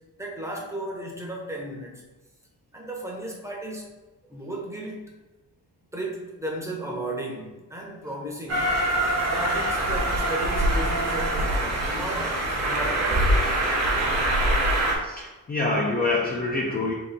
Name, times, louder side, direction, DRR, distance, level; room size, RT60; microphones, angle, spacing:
voice 1, 0.2-2.1 2.7-3.9 4.3-5.1 5.9-8.7 9.3-13.3, right 1 dB, 10° right, -2 dB, 0.8 m, -34 dB
Train, 8.5-14.9, right 1 dB, 45° right, 1.0 m, -24 dB
voice 2, 15.0-16.9, left 2 dB, 25° left, -3 dB, 0.5 m, -26 dB
3.9 x 2.6 x 4.1 m, 1.1 s
wide cardioid pair, 145°, 36 cm